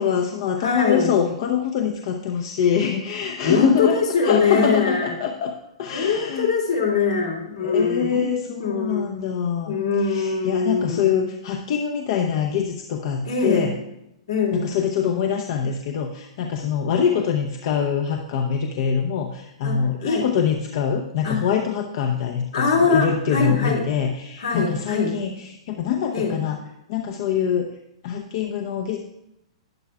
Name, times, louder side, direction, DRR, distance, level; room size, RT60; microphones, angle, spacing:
voice 1, 0.0-4.0 4.2-5.5 5.8-6.5 7.6-9.8 10.0-13.7 14.5-26.6 26.9-27.7 28.0-29.0, left 7 dB, 50° left, 4 dB, 0.7 m, -24 dB
voice 2, 0.6-1.1 3.4-5.2 5.9-8.3 8.6-9.1 9.7-11.2 13.2-13.7 14.3-14.7 19.6-20.2 21.2-21.4 22.5-23.8 24.4-25.2 26.1-26.4, left 4 dB, 75° left, -2 dB, 2.7 m, -22 dB
12.0 x 10.0 x 2.4 m, 0.85 s
figure-of-eight pair, 110°, 3 cm